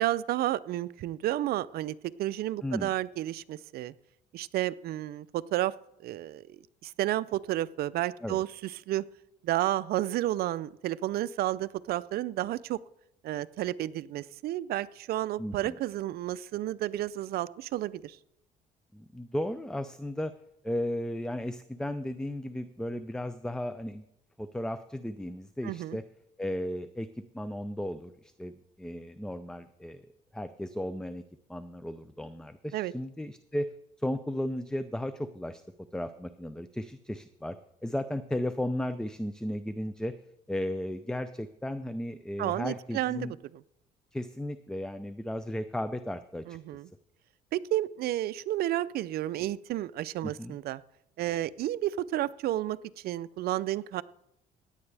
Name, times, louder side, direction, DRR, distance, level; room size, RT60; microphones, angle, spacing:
voice 1, 0.0-3.9 4.3-5.7 6.0-9.0 9.4-12.8 13.2-18.2 25.6-26.0 32.7-32.9 42.4-43.3 46.5-46.9 47.5-50.8 51.2-52.8 53.0-54.0, right 14 dB, 65° right, 17 dB, 0.5 m, -31 dB
voice 2, 2.6-2.9 8.2-8.4 15.4-15.8 18.9-20.3 20.6-24.0 24.4-26.0 26.4-30.0 30.3-31.2 31.5-33.7 34.0-35.6 35.9-37.6 37.8-40.2 40.5-43.3 44.1-46.6 50.2-50.6, left 1 dB, 5° left, 12 dB, 0.4 m, -35 dB
16.5 x 9.7 x 3.4 m, 0.81 s
cardioid pair, 110°, 17 cm